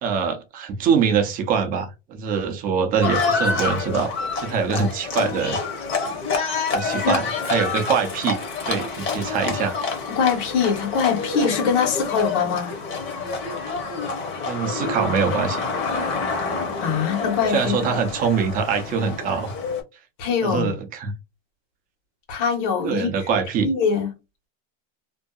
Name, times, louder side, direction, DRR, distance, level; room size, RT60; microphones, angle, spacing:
voice 1, 0.0-4.1 4.4-5.6 6.7-8.4 8.6-9.8 14.5-15.6 17.5-19.5 20.4-21.1 22.8-23.7, right 6 dB, 25° right, 0.4 m, -23 dB
Livestock farm animals working animals, 3.0-19.8, left 4 dB, 30° left, 0.8 m, -27 dB
voice 2, 10.1-12.7 16.8-17.7 20.2-20.7 22.3-23.1 23.6-24.1, left 6 dB, 65° left, 1.3 m, -22 dB
2.7 x 2.2 x 2.3 m
supercardioid pair, 160°, 38 cm